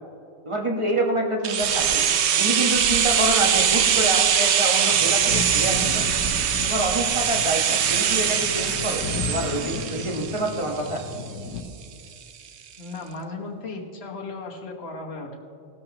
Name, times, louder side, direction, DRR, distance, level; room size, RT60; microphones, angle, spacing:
voice 1, 0.4-2.0 2.4-6.0 6.7-11.0, right 1 dB, 25° right, 0 dB, 1.3 m, -27 dB
sound 1, 1.4-11.3 11.6-11.7, right 8 dB, 65° right, 0.9 m, -22 dB
sound 2, 4.9-11.6, left 4 dB, 80° left, 1.2 m, -34 dB
voice 2, 12.8-15.4, left 3 dB, 55° left, 0 dB, 1.5 m, -36 dB
16.5 x 13.0 x 3.0 m, 2.3 s
omnidirectional pair, 1.3 m